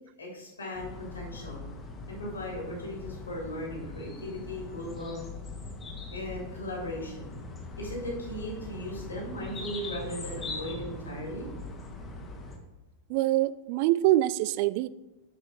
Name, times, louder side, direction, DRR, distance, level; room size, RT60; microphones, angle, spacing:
voice 1, 0.2-1.6 2.1-5.2 6.1-7.3 7.8-11.5, left 1 dB, 75° left, -2 dB, 2.8 m, -37 dB
sound 1, 0.7-12.6, left 2 dB, 20° left, 1.4 m, -41 dB
voice 2, 13.1-14.9, right 15 dB, 45° right, 17 dB, 0.3 m, -24 dB
8.5 x 5.4 x 4.7 m, 1.1 s
figure-of-eight pair, 90°, 0 cm